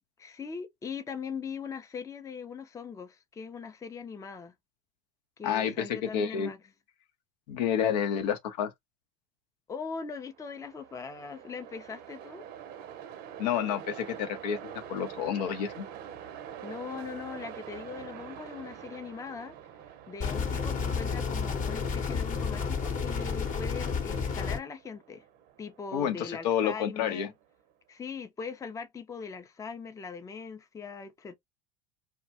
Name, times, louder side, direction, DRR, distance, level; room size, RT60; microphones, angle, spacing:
voice 1, 0.2-4.5 5.4-6.6 9.7-12.5 16.6-19.6 20.1-25.2 25.6-27.3 27.9-31.3, left 5 dB, 15° left, 0.5 m, -40 dB
voice 2, 5.4-6.5 7.5-8.7 13.4-15.8 25.9-27.3, left 8 dB, 75° left, 0.7 m, -29 dB
Train, 10.2-27.4, right 9 dB, 50° right, 0.6 m, -46 dB
sound 1, 20.2-24.6, left 5 dB, 40° left, 0.9 m, -31 dB
2.3 x 2.1 x 2.7 m
hypercardioid pair, 85°, 21 cm